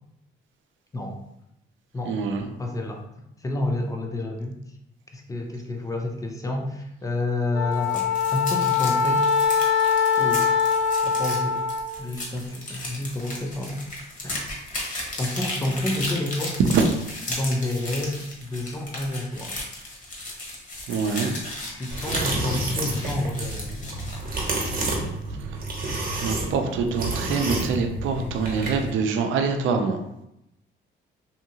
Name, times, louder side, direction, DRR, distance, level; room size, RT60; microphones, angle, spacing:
voice 1, 2.1-2.4 16.7-16.8 20.9-21.3 25.4-25.6 26.2-30.0, right 5 dB, 80° right, 5 dB, 0.5 m, -25 dB
voice 2, 2.6-3.0 3.4-4.6 5.1-9.2 10.2-10.6 11.0-11.6 12.0-13.8 14.2-14.4 15.2-16.6 17.3-19.7 21.7-23.8, left 2 dB, 15° left, 2 dB, 0.5 m, -29 dB
Wind instrument woodwind instrument, 7.5-11.9, left 6 dB, 65° left, 1.0 m, -22 dB
sound 1, 7.7-25.1, left 1 dB, 40° left, 1.0 m, -35 dB
sound 2, 21.9-28.9, right 2 dB, 50° right, 0.9 m, -29 dB
2.8 x 2.7 x 2.8 m, 0.83 s
cardioid pair, 90°, 20 cm